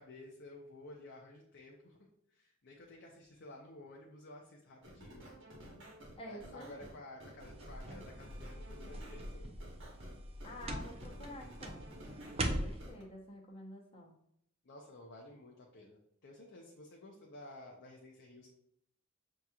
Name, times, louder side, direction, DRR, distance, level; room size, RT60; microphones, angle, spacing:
voice 1, 0.0-2.0 2.3-5.3 6.3-9.5 14.6-18.5, left 1 dB, 55° left, -1 dB, 0.6 m, -53 dB
sound 1, 4.8-13.0, right 1 dB, 60° right, 1.1 m, -53 dB
voice 2, 6.2-6.9 10.4-11.9 12.4-14.1, left 1 dB, 25° left, -1 dB, 0.8 m, -49 dB
sound 2, 7.4-12.9, right 1 dB, 30° right, 0.4 m, -41 dB
6.2 x 2.9 x 2.3 m, 0.75 s
head